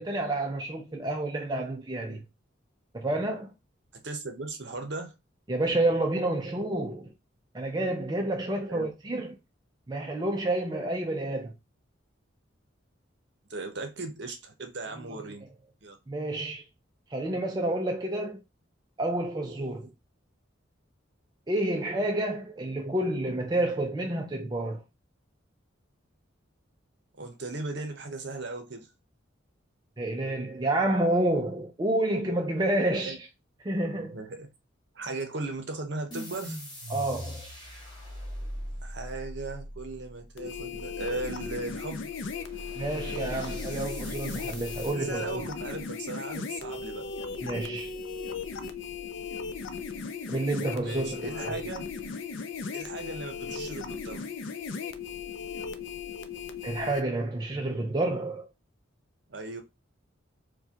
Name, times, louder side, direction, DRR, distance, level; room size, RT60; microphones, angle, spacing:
voice 1, 0.0-2.2 2.9-3.5 5.5-7.1 7.5-9.3 9.9-11.5 16.1-16.6 17.1-18.4 19.0-19.9 21.5-24.8 30.0-33.2 33.6-34.2 36.9-37.5 42.8-45.4 47.4-47.9 50.3-51.5 56.6-58.5, right 1 dB, 20° right, 0.4 m, -29 dB
voice 2, 4.0-5.1 8.7-8.9 13.5-15.5 15.8-16.0 27.2-28.9 33.0-33.2 33.9-34.5 34.9-36.6 38.8-42.1 44.9-47.1 50.8-51.9 52.7-54.3 59.3-59.6, right 2 dB, 60° right, 0.8 m, -37 dB
sound 1, 36.1-45.0, equal, 20° left, 1.4 m, -41 dB
sound 2, 40.4-57.0, left 5 dB, 70° left, 0.4 m, -37 dB
4.6 x 2.2 x 2.8 m
head